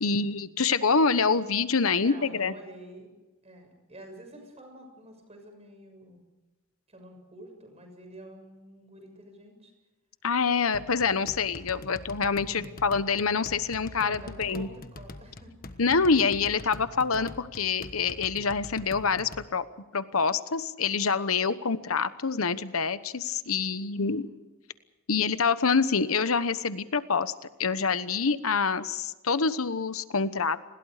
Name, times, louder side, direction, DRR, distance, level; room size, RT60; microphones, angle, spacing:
voice 1, 0.0-2.5 10.2-14.7 15.8-19.7 19.9-24.2 25.1-27.3 27.6-30.6, left 5 dB, 85° left, 13 dB, 1.1 m, -26 dB
voice 2, 1.9-3.1 3.4-6.2 6.9-9.7 12.5-12.7 14.0-15.8 23.9-24.1, right 1 dB, 30° right, 4 dB, 6.7 m, -48 dB
sound 1, 10.7-19.5, left 2 dB, 45° left, 1.4 m, -45 dB
29.5 x 21.0 x 5.0 m, 1.1 s
head